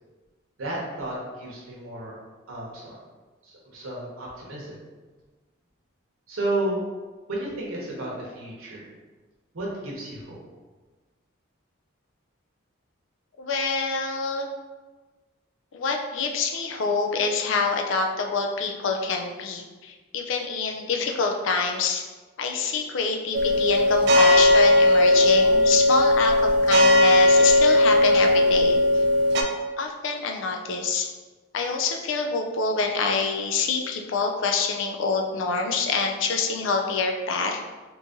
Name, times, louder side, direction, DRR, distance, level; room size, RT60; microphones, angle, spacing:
voice 1, 0.6-2.2 2.5-3.0 3.4-4.8 6.3-6.8 7.3-8.9 9.5-10.4, right 1 dB, 85° right, -4 dB, 0.9 m, -32 dB
voice 2, 13.4-14.5 15.7-22.0 22.4-29.0 29.8-31.1 31.5-37.6, left 4 dB, 65° left, 3 dB, 0.4 m, -26 dB
sound 1, 23.3-29.4, left 1 dB, 55° right, 0.4 m, -18 dB
3.0 x 2.6 x 3.6 m, 1.3 s
head